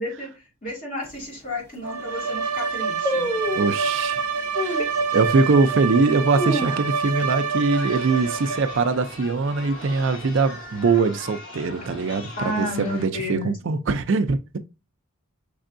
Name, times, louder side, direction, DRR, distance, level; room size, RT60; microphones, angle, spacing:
voice 1, 0.0-3.3 12.4-13.5, left 1 dB, 40° left, 2.3 m, -32 dB
sound 1, 1.0-1.1 1.7-1.8 2.0-2.4 3.0-3.8 4.5-4.9 5.5-5.6 6.1-7.2 7.5-7.6 7.9-8.3 8.7-9.1 9.7-10.5 10.7-10.8, equal, 10° left, 0.6 m, -28 dB
Bowed string instrument, 1.8-8.9, right 5 dB, 90° right, 0.7 m, -27 dB
voice 2, 3.5-4.2 4.6-4.8 5.1-14.6, right 4 dB, 55° right, 0.4 m, -22 dB
Chatter, 7.7-13.0, left 2 dB, 70° left, 2.3 m, -40 dB
5.3 x 3.4 x 2.5 m
head